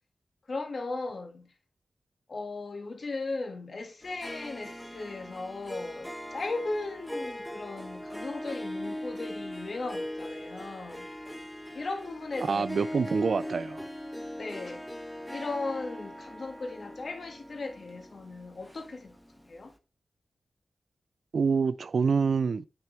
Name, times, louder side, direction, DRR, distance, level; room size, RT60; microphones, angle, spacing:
voice 1, 0.5-1.5 2.3-11.1 11.7-12.9 14.4-14.8 15.3-19.2 19.5-19.7, left 3 dB, 55° left, 1.8 m, -37 dB
Harp, 4.0-19.4, left 1 dB, ahead, 1.0 m, -40 dB
voice 2, 12.4-13.8 21.3-22.6, right 5 dB, 65° right, 0.3 m, -26 dB
8.8 x 6.8 x 3.2 m
wide cardioid pair, 115°, 0 cm